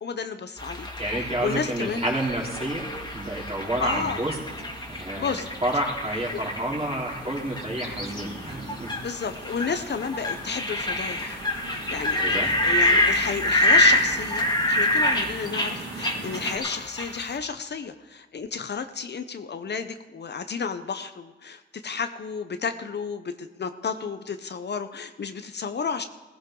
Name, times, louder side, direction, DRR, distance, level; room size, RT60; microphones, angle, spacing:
voice 1, 0.0-0.9 1.2-2.0 3.8-4.2 5.2-5.5 9.0-11.4 11.7-26.1, left 5 dB, 60° left, 9 dB, 0.8 m, -32 dB
sound 1, 0.6-17.4, left 1 dB, 20° left, 2.2 m, -27 dB
voice 2, 1.0-4.4 4.9-8.9 12.2-12.5, right 1 dB, 30° right, -2 dB, 3.9 m, -29 dB
sound 2, 2.0-16.6, right 3 dB, 85° right, 4.3 m, -42 dB
16.5 x 15.5 x 3.9 m, 1.2 s
cardioid pair, 75°, 20 cm